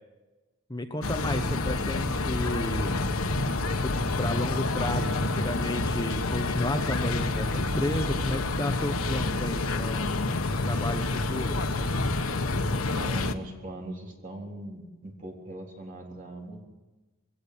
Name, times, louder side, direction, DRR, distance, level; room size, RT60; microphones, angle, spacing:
voice 1, 0.7-3.0 3.8-10.1 10.6-11.6, left 1 dB, 20° left, 6 dB, 1.1 m, -32 dB
sound 1, 1.0-13.3, left 2 dB, 85° left, 1.3 m, -28 dB
voice 2, 12.9-16.6, right 1 dB, 40° right, 0 dB, 3.8 m, -40 dB
21.0 x 17.5 x 8.5 m, 1.1 s
head